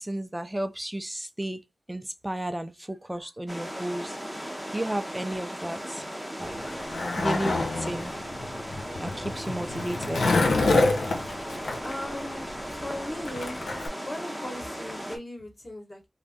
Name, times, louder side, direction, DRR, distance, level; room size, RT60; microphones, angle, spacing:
voice 1, 0.0-1.6 1.9-6.0 6.4-6.8 7.2-8.1 9.0-10.5, right 1 dB, 10° right, 0.4 m, -33 dB
sound 1, 3.5-15.2, equal, 5° left, 0.8 m, -37 dB
Skateboard, 6.4-13.9, left 3 dB, 90° left, 0.7 m, -27 dB
voice 2, 11.8-13.6 14.0-16.1, left 1 dB, 25° left, 1.3 m, -38 dB
2.7 x 2.5 x 3.4 m
wide cardioid pair, 105°, 0 cm